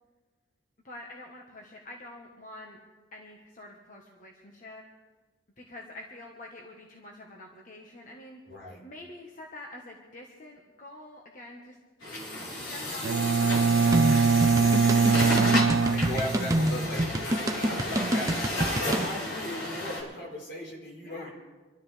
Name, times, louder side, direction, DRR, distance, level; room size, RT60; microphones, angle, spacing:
voice 1, 0.8-2.8 3.1-4.8 5.6-8.4 8.8-11.8 12.5-14.8 15.8-16.3 18.5-19.0 21.0-21.3, left 1 dB, 45° left, 0 dB, 1.3 m, -46 dB
voice 2, 8.4-8.8 15.9-21.3, left 1 dB, 70° left, -3 dB, 4.3 m, -38 dB
Truck, 12.0-20.0, left 1 dB, 90° left, 4.0 m, -32 dB
Bowed string instrument, 13.0-16.9, right 5 dB, 85° right, 0.4 m, -23 dB
sound 1, 13.9-19.1, right 1 dB, 15° right, 0.6 m, -27 dB
25.5 x 13.0 x 3.4 m, 1.3 s
head